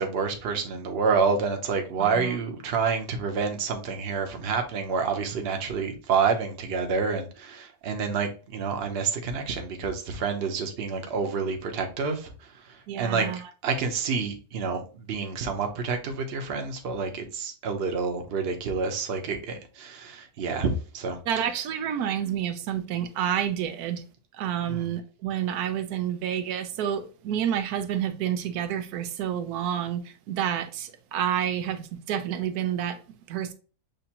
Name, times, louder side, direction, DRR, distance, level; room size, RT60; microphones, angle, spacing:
voice 1, 0.0-13.3 13.6-21.2 24.7-24.8, right 5 dB, 50° right, 0.9 m, -28 dB
voice 2, 2.0-2.4 12.9-13.5 21.3-24.0 24.3-33.5, right 9 dB, 90° right, 1.1 m, -29 dB
6.4 x 2.5 x 2.8 m
omnidirectional pair, 1.6 m